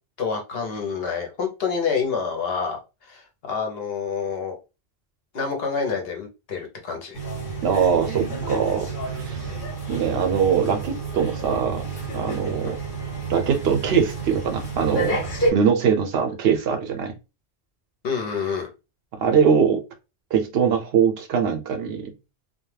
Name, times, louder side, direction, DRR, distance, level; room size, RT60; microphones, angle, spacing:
voice 1, 0.2-4.6 5.3-7.2 18.0-18.7, left 5 dB, 70° left, 3 dB, 0.9 m, -28 dB
sound 1, 7.1-15.5, right 3 dB, 50° left, 1.1 m, -29 dB
voice 2, 7.6-8.9 9.1-9.5 9.9-11.8 12.1-12.8 13.3-15.1 15.5-17.2 19.2-19.8 20.3-22.1, right 7 dB, 75° right, 6 dB, 0.8 m, -22 dB
2.2 x 2.2 x 3.1 m, 0.28 s
omnidirectional pair, 1.1 m